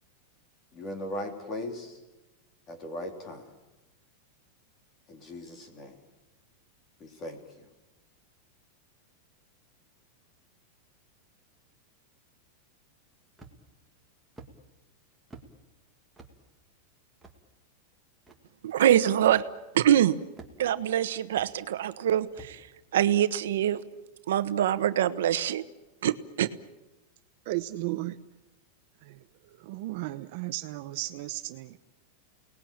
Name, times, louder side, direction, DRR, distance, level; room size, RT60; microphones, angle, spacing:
voice 1, 0.7-2.0 2.7-3.5 5.1-5.9 7.0-7.4, left 1 dB, 20° left, 5 dB, 3.2 m, -38 dB
sound 1, 13.4-13.8 14.4-14.5 15.3-15.5 16.2-16.4 17.2-17.4 18.3-18.4 19.3-19.5 20.4-20.8 21.4-21.5 22.4-22.6, right 3 dB, 5° right, 2.0 m, -48 dB
voice 2, 18.6-19.4 19.7-20.1 20.6-22.6 22.9-23.8 24.3-25.6 26.0-26.5, right 11 dB, 80° right, 12 dB, 1.3 m, -24 dB
voice 3, 27.4-28.2 29.0-31.8, right 18 dB, 45° right, 11 dB, 0.8 m, -35 dB
29.0 x 19.5 x 8.9 m, 1.1 s
supercardioid pair, 175°, 0 cm